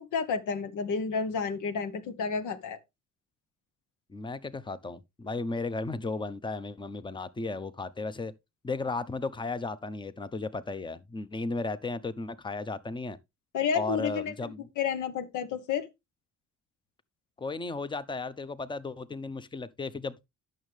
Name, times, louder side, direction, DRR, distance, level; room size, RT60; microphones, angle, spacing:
voice 1, 0.0-2.8 13.5-15.9, left 6 dB, 80° left, 1.2 m, -31 dB
voice 2, 4.1-8.3 8.6-13.2 13.7-14.7 17.4-20.3, left 3 dB, 15° left, 0.7 m, -35 dB
11.0 x 6.4 x 3.3 m
cardioid pair, 90°, 30 cm